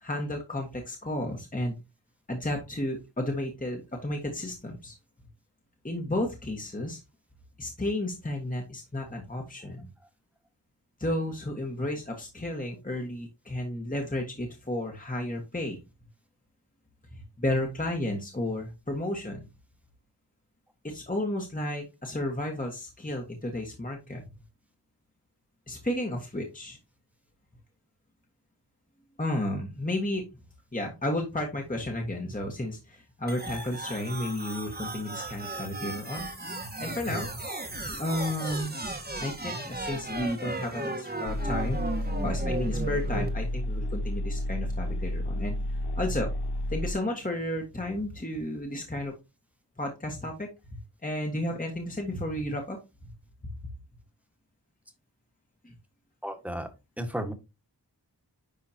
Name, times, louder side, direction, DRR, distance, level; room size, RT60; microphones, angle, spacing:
voice 1, 0.0-1.7 2.3-4.9 5.8-7.0 7.6-9.9 11.0-15.8 17.1-19.5 20.8-24.2 25.7-26.8 29.2-30.2 30.7-36.2 36.8-37.4 38.0-38.7 39.2-41.8 42.2-45.6 45.9-46.3 46.7-49.1 49.8-50.5 51.0-52.8 55.6-55.7, left 1 dB, 20° left, 2 dB, 1.5 m, -32 dB
sound 1, 33.3-43.3, right 2 dB, 25° right, 1.3 m, -35 dB
sound 2, 41.3-46.9, left 1 dB, 70° left, 0.6 m, -31 dB
voice 2, 56.2-56.7 57.0-57.3, equal, 5° right, 6 dB, 1.5 m, -33 dB
10.5 x 3.7 x 2.8 m, 0.26 s
wide cardioid pair, 50°, 42 cm